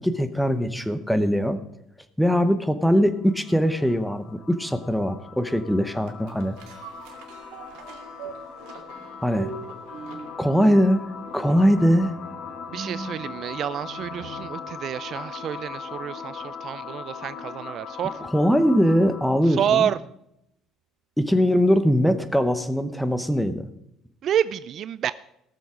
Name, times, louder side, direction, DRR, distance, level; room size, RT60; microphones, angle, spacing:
voice 1, 0.0-1.6 2.2-6.6 9.2-9.5 10.4-11.1 11.3-12.1 18.3-19.9 21.2-23.7, equal, ahead, 11 dB, 0.9 m, -21 dB
sound 1, 2.9-19.5, left 6 dB, 50° left, 1.3 m, -40 dB
sound 2, 6.0-14.6 15.1-15.2, right 5 dB, 85° right, 2.1 m, -41 dB
voice 2, 12.7-18.2 19.6-20.0 24.2-25.1, right 9 dB, 50° right, 16 dB, 0.3 m, -28 dB
18.0 x 7.0 x 4.9 m, 0.79 s
cardioid pair, 125°, 0 cm